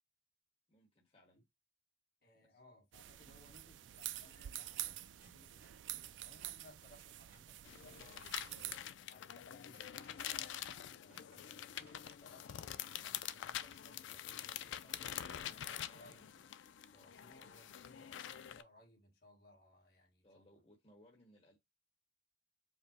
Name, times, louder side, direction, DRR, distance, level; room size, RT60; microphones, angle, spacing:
voice 1, 0.7-1.4 2.4-2.6 8.0-8.9 15.0-16.4 16.9-17.4 20.2-21.6, left 1 dB, 35° left, 1.2 m, -66 dB
voice 2, 2.2-8.3 9.0-16.2 16.9-20.5, left 1 dB, 55° left, 1.4 m, -64 dB
sound 1, 2.9-8.8, right 13 dB, 80° right, 0.3 m, -47 dB
sound 2, 4.9-7.7 9.4-12.6 12.9-13.9 15.7-16.6, right 2 dB, 55° right, 1.2 m, -69 dB
sound 3, 7.7-18.6, left 10 dB, 85° left, 0.4 m, -46 dB
4.9 x 2.0 x 4.1 m
head